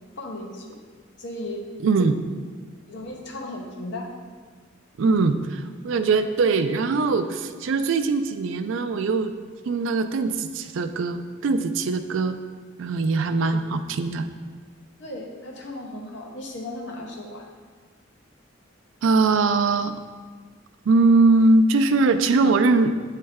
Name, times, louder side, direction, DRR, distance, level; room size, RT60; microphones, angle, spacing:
voice 1, 0.2-0.8 1.2-1.6 2.0-2.2 2.9-4.1 15.0-17.4, left 1 dB, 60° left, 0 dB, 0.9 m, -36 dB
voice 2, 1.8-2.2 5.0-9.3 9.7-12.4 12.8-14.3 19.0-19.9 20.9-22.9, right 3 dB, 75° right, 9 dB, 0.4 m, -21 dB
8.5 x 3.2 x 3.5 m, 1.6 s
head